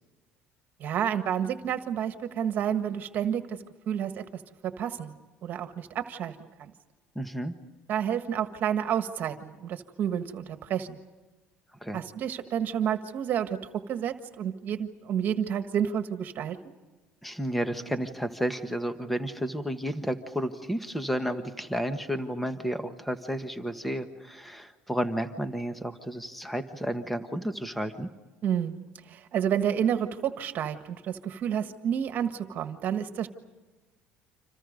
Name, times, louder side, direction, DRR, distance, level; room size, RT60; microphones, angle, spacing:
voice 1, 0.8-5.1 5.4-6.7 7.9-11.0 11.9-16.8 28.4-33.3, right 9 dB, 50° right, 8 dB, 1.6 m, -30 dB
voice 2, 7.1-7.5 11.8-12.0 17.2-28.1, equal, 5° left, 8 dB, 1.5 m, -32 dB
30.0 x 27.5 x 5.3 m, 1.2 s
cardioid pair, 120°, 4 cm